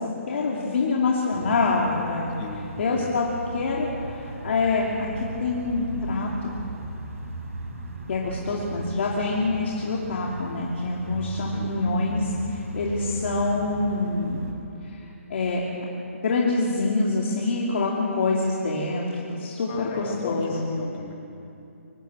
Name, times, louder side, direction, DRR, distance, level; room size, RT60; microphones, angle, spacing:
voice 1, 0.0-2.3 2.8-3.2 3.5-6.5 8.1-14.4 14.8-15.0 15.3-15.6 16.2-20.7, left 3 dB, 55° left, -3 dB, 2.9 m, -26 dB
sound 1, 1.3-14.5, right 3 dB, 85° right, 4.7 m, -37 dB
voice 2, 2.4-2.8 11.5-11.7 19.7-21.1, left 5 dB, 30° left, 3 dB, 2.4 m, -37 dB
25.0 x 12.5 x 8.8 m, 2.8 s
hypercardioid pair, 160°, 8 cm